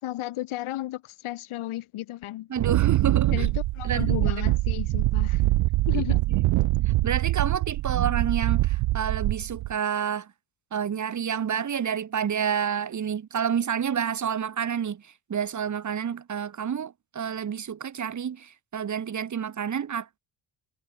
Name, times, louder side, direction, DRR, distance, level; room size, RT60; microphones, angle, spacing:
voice 1, 0.0-2.5 3.3-5.5 5.9-6.2, left 15 dB, 90° left, 5.3 m, -34 dB
voice 2, 2.5-3.5 3.8-4.3 5.9-6.0 6.3-6.4 7.0-10.3 10.7-20.2, right 8 dB, 35° right, 2.3 m, -29 dB
Wind, 2.6-9.7, right 19 dB, 90° right, 1.0 m, -24 dB
cardioid pair, 145°, 48 cm